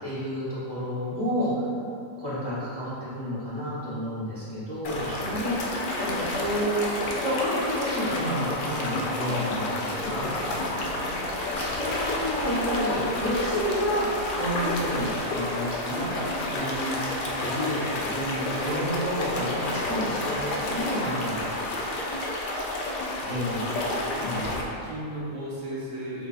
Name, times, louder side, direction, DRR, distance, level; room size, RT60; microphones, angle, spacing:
voice 1, 0.0-1.5 2.2-5.5 5.9-10.3 11.5-14.0 14.3-17.0 17.4-19.6 19.8-21.5 23.3-23.6 24.2-24.5, equal, 20° left, -12 dB, 0.9 m, -30 dB
sound 1, 4.8-24.6, left 2 dB, 75° left, 0.4 m, -30 dB
voice 2, 5.0-5.5 10.4-11.0 17.2-18.0 23.2-23.4 24.2-24.5 24.8-26.3, right 1 dB, 80° right, -7 dB, 1.3 m, -38 dB
sound 2, 9.9-15.2, left 2 dB, 55° left, 0.8 m, -41 dB
sound 3, 10.8-21.0, equal, 30° right, 0.9 m, -50 dB
6.7 x 2.3 x 2.4 m, 2.6 s
omnidirectional pair, 1.4 m